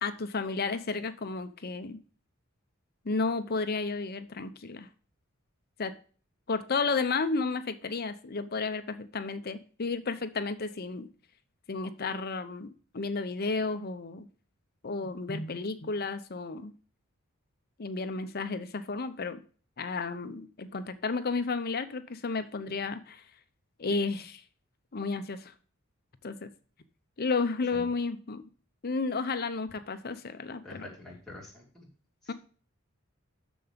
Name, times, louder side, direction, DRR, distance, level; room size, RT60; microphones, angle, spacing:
voice 1, 0.0-2.0 3.0-4.9 5.8-5.9 6.5-11.1 11.7-14.3 14.8-16.7 17.8-19.4 19.8-23.2 23.8-24.4 24.9-25.5 26.2-26.5 27.2-28.4 28.8-30.9 32.3-32.4, left 4 dB, 45° left, 10 dB, 0.7 m, -32 dB
voice 2, 30.6-31.9 32.2-32.3, left 2 dB, ahead, -4 dB, 2.9 m, -46 dB
6.9 x 6.3 x 5.1 m, 0.40 s
head